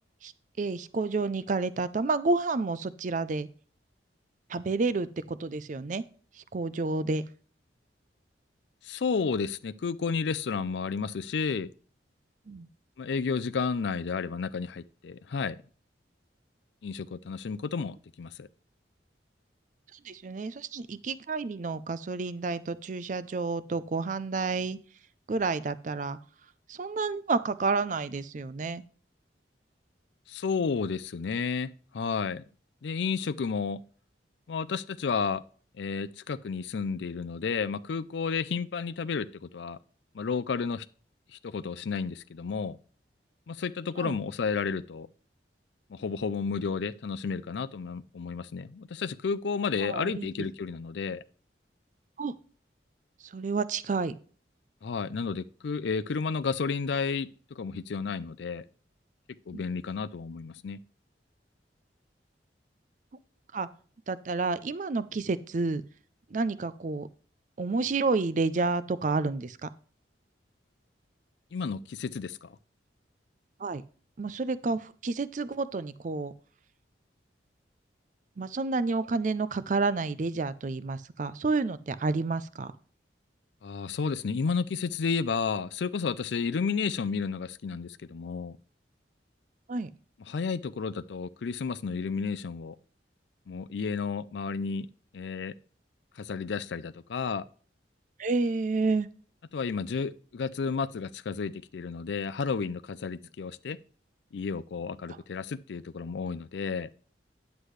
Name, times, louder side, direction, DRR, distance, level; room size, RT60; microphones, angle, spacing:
voice 1, 0.6-3.5 4.5-6.0 6.5-7.2 12.5-12.7 20.0-24.8 25.3-26.2 26.7-28.8 44.0-44.2 49.8-50.3 52.2-52.3 53.3-54.1 59.5-59.6 63.5-63.7 64.1-65.8 66.3-67.1 67.6-69.7 73.6-73.8 74.2-76.3 78.4-82.7 89.7-89.9 98.2-99.1, right 3 dB, 40° right, 0.4 m, -30 dB
voice 2, 8.8-11.7 13.0-15.6 16.8-18.5 30.3-32.4 32.8-33.8 34.5-35.4 35.8-39.8 40.1-40.9 41.3-42.8 43.5-45.1 45.9-51.2 54.8-58.6 59.5-60.8 71.5-72.6 83.6-88.6 90.3-92.8 93.5-94.9 95.1-95.5 96.2-97.5 99.5-103.8 104.3-106.9, left 5 dB, 70° left, 0.4 m, -32 dB
9.6 x 8.1 x 3.2 m
head